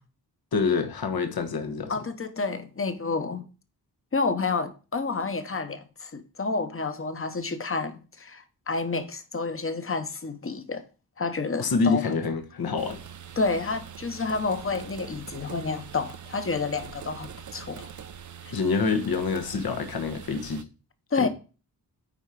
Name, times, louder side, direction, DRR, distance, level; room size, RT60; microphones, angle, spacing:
voice 1, 0.5-1.9 11.6-13.0 18.5-20.7 21.2-21.3, left 4 dB, 70° left, 1.2 m, -26 dB
voice 2, 1.9-3.4 4.1-10.8 11.2-12.1 13.4-17.9 21.1-21.3, left 4 dB, 35° left, 1.0 m, -29 dB
sound 1, 12.8-20.6, right 8 dB, 50° right, 0.6 m, -43 dB
8.9 x 4.4 x 4.9 m
wide cardioid pair, 95°, 38 cm